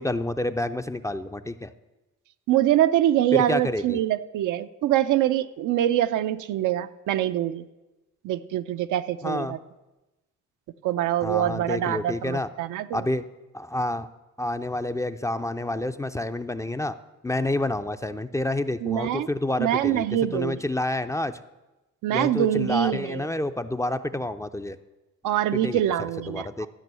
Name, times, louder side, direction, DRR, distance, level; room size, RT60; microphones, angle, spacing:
voice 1, 0.0-1.7 3.3-4.0 9.2-9.6 11.2-12.5 12.9-13.3 13.5-14.1 14.4-16.9 17.2-20.1 20.3-21.4 22.1-24.8 25.5-25.8 26.3-26.7, left 1 dB, 10° left, 10 dB, 0.4 m, -28 dB
voice 2, 2.5-7.6 8.2-9.6 10.8-13.1 18.8-19.3 19.6-20.6 22.0-23.3 25.2-26.7, right 12 dB, 80° right, 11 dB, 0.5 m, -24 dB
12.0 x 5.4 x 7.6 m, 1.0 s
cardioid pair, 90°, 30 cm